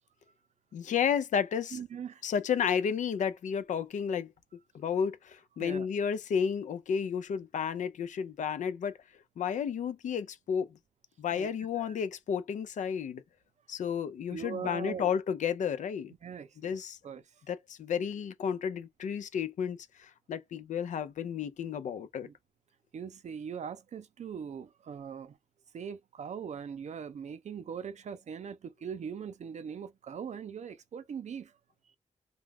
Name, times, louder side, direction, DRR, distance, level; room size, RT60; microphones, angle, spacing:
voice 1, 0.7-1.8 2.2-4.3 4.7-8.9 9.4-10.7 11.2-13.2 13.7-16.1 16.6-17.0 17.5-22.3, left 7 dB, 85° left, 0.4 m, -32 dB
voice 2, 1.7-2.2 5.6-5.9 11.3-12.0 14.3-15.1 16.2-16.8 17.0-17.2 22.2-22.3 22.9-25.4 25.7-31.5, right 7 dB, 70° right, 0.5 m, -41 dB
2.2 x 2.2 x 3.4 m
wide cardioid pair, 85°, 12 cm